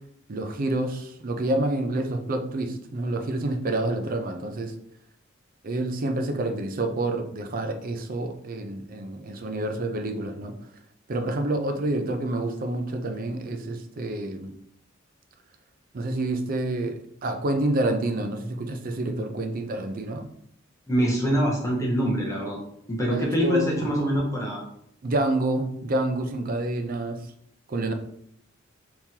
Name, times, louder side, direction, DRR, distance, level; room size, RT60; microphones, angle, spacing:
voice 1, 0.3-4.7 5.6-10.5 11.1-14.5 15.9-20.3 23.1-23.9 25.0-27.3 27.7-27.9, right 2 dB, 45° right, 6 dB, 0.4 m, -28 dB
voice 2, 20.9-22.6 22.9-24.6, equal, 15° left, -2 dB, 0.7 m, -24 dB
3.7 x 2.9 x 2.8 m, 0.70 s
head